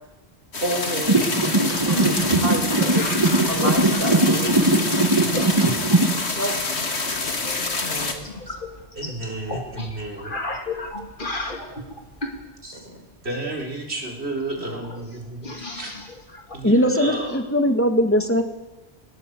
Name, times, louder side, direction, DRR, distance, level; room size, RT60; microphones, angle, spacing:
sound 1, 0.5-8.1, left 3 dB, 85° left, 2.4 m, -27 dB
voice 1, 0.6-2.9 3.5-4.9 6.3-6.6 6.9-7.1 7.8-8.6 12.7-13.0 14.6-14.9, right 1 dB, 60° right, 4 dB, 4.6 m, -30 dB
sound 2, 1.1-6.1, right 2 dB, 25° right, 1.5 m, -20 dB
sound 3, 1.8-4.0 4.3-4.8 5.3-6.8 7.1-12.4 14.1-14.2 14.4-14.5 14.8-17.4, left 2 dB, 50° left, 2.7 m, -34 dB
voice 2, 8.9-10.4 12.6-12.8 13.2-15.9 16.5-17.4, right 1 dB, 80° right, 1 dB, 4.3 m, -31 dB
voice 3, 16.6-18.4, equal, 10° left, 6 dB, 2.1 m, -20 dB
21.5 x 20.5 x 8.0 m, 1.1 s
omnidirectional pair, 1.1 m